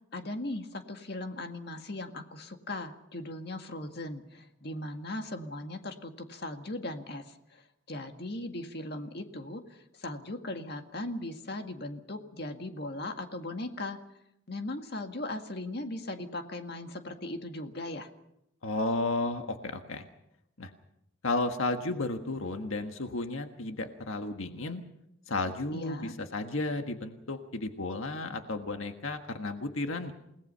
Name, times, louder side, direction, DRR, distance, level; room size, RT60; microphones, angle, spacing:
voice 1, 0.1-14.0 14.5-18.1 25.7-26.1, left 1 dB, 50° left, 5 dB, 1.9 m, -38 dB
voice 2, 18.6-20.1 20.6-20.7 21.2-24.8 25.3-30.1, left 2 dB, 80° left, 6 dB, 1.5 m, -33 dB
29.0 x 18.5 x 5.6 m, 0.80 s
head